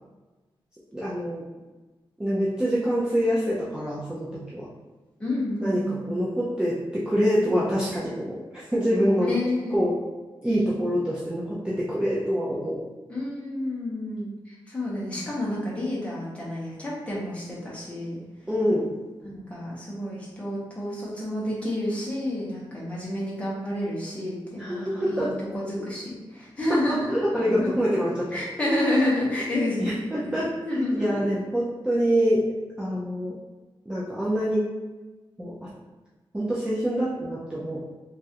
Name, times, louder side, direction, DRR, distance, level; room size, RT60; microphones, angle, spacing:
voice 1, 0.9-1.4 2.2-4.7 5.6-9.3 9.7-10.0 10.4-12.8 18.5-18.9 24.6-25.3 26.9-28.3 29.8-32.4 32.8-33.3 33.9-34.7 35.4-35.7 36.3-37.9, equal, 10° right, -8 dB, 0.4 m, -25 dB
voice 2, 5.2-6.2 9.2-9.8 13.1-18.2 19.2-27.7 28.3-31.2, left 1 dB, 15° left, -6 dB, 0.8 m, -29 dB
3.0 x 2.3 x 2.8 m, 1.2 s
wide cardioid pair, 170°, 9 cm